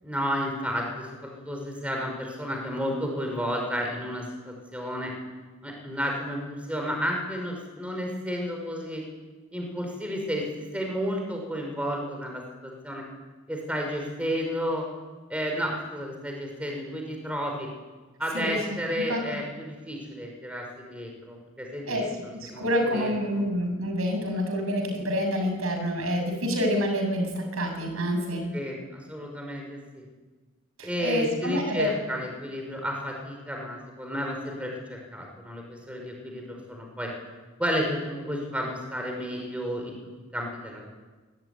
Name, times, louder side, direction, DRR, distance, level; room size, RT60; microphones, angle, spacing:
voice 1, 0.0-5.1 5.6-9.0 9.5-10.4 10.7-13.0 13.5-14.8 15.3-17.7 18.2-22.1 22.5-23.4 28.5-30.0 30.8-37.1 37.6-40.0 40.3-40.9, equal, 5° right, 1 dB, 5.5 m, -32 dB
voice 2, 22.3-28.5 30.8-31.9, equal, 70° right, 5 dB, 7.3 m, -27 dB
24.5 x 20.0 x 9.9 m, 1.3 s
head